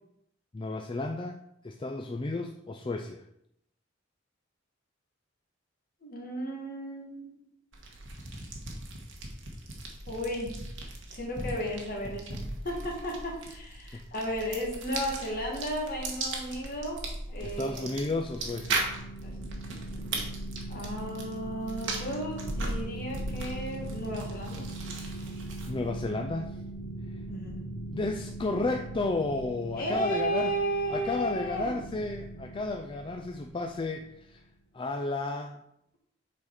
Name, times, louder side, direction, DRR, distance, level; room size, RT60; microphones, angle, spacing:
voice 1, 0.5-3.2 13.9-14.1 17.4-18.9 25.7-26.6 27.9-30.5 30.9-34.4 34.7-35.6, left 2 dB, 25° left, 4 dB, 0.4 m, -32 dB
voice 2, 6.0-7.5 10.1-10.5 11.1-17.9 19.2-19.3 20.7-24.7 27.3-27.6 29.8-31.7, equal, 45° left, -1 dB, 1.9 m, -34 dB
sound 1, 7.7-25.9, right 2 dB, 65° right, 1.5 m, -38 dB
sound 2, 18.1-34.3, right 2 dB, 65° left, 1.6 m, -41 dB
7.2 x 4.3 x 4.9 m, 0.76 s
head